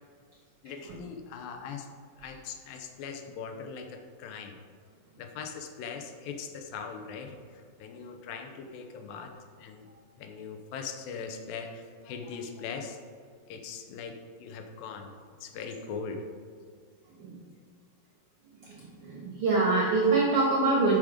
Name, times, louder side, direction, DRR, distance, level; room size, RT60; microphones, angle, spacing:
voice 1, 0.6-1.9 2.2-4.6 5.2-9.3 9.6-9.9 10.2-13.0 13.5-15.1 15.4-16.2, left 5 dB, 80° left, 4 dB, 2.4 m, -40 dB
voice 2, 18.6-21.0, right 3 dB, 60° right, -3 dB, 1.5 m, -25 dB
11.0 x 5.1 x 5.0 m, 2.1 s
omnidirectional pair, 4.2 m